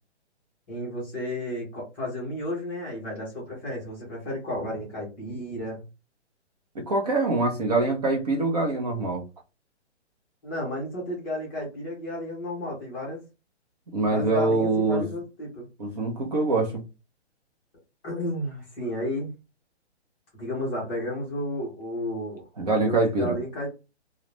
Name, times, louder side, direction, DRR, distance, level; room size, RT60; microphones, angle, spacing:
voice 1, 0.7-5.8 10.4-13.2 14.1-15.7 18.0-19.3 20.3-22.4 22.7-23.7, left 1 dB, 10° left, -4 dB, 0.6 m, -32 dB
voice 2, 6.8-9.2 13.9-15.0 15.8-16.8 22.6-23.3, right 3 dB, 35° right, 1 dB, 0.5 m, -24 dB
2.3 x 2.0 x 3.1 m, 0.28 s
hypercardioid pair, 160°, 35 cm